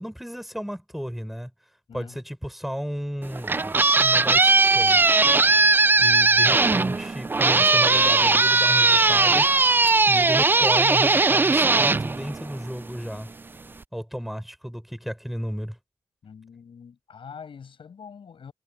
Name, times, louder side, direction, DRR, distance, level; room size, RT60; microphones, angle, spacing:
voice 1, 0.0-1.5 1.9-5.0 6.0-9.5 10.1-13.3 13.9-15.8, equal, ahead, 5.6 m, -33 dB
voice 2, 1.9-2.2 16.2-18.5, left 6 dB, 70° left, 6.4 m, -44 dB
sound 1, 3.2-12.9, right 3 dB, 20° right, 0.3 m, -19 dB
cardioid pair, 85°, 9 cm